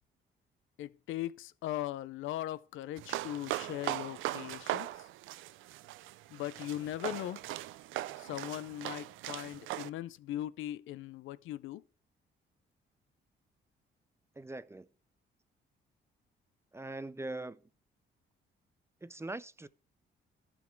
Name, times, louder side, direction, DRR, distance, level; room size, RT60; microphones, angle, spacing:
voice 1, 0.8-5.1 6.3-7.4 8.2-11.8, left 13 dB, 80° left, 0.5 m, -39 dB
sound 1, 3.0-9.9, right 15 dB, 85° right, 0.4 m, -39 dB
voice 2, 14.4-14.9 16.7-17.6 19.0-19.7, right 2 dB, 15° right, 0.5 m, -41 dB
12.0 x 6.2 x 4.5 m
cardioid pair, 90°, 20 cm